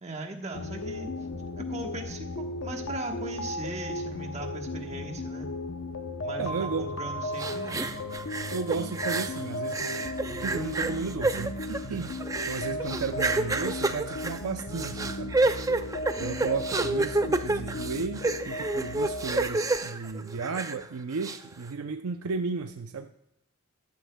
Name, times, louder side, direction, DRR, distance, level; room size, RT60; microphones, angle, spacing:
voice 1, 0.0-1.1 1.6-5.5 6.2-7.9 12.6-13.0, right 2 dB, 30° right, 3 dB, 1.2 m, -39 dB
sound 1, 0.5-19.5, left 1 dB, 60° left, 0.7 m, -36 dB
voice 2, 6.4-6.9 8.5-10.1 10.4-12.1 12.5-15.4 16.2-23.1, right 5 dB, 90° right, 7 dB, 0.5 m, -34 dB
sound 2, 7.4-9.4 9.7-20.8 21.2-21.4, right 2 dB, 15° right, 0.4 m, -29 dB
14.0 x 11.5 x 2.3 m, 0.82 s
head